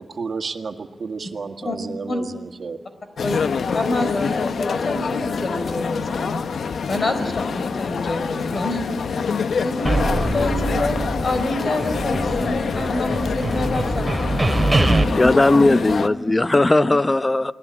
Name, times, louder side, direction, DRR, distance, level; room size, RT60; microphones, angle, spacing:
voice 1, 0.2-2.8, right 4 dB, 60° right, 6 dB, 1.9 m, -31 dB
sound 1, 3.2-16.1, left 5 dB, 75° left, 0.8 m, -26 dB
voice 2, 3.7-6.4 6.9-8.8 9.6-14.1 14.7-15.0, left 2 dB, 50° left, 9 dB, 4.4 m, -27 dB
sound 2, 9.9-11.5 11.8-15.0, right 1 dB, 15° right, 2.4 m, -23 dB
voice 3, 15.1-17.5, left 2 dB, 25° left, 13 dB, 0.8 m, -17 dB
28.5 x 19.5 x 8.4 m, 1.2 s
cardioid pair, 80°, 0 cm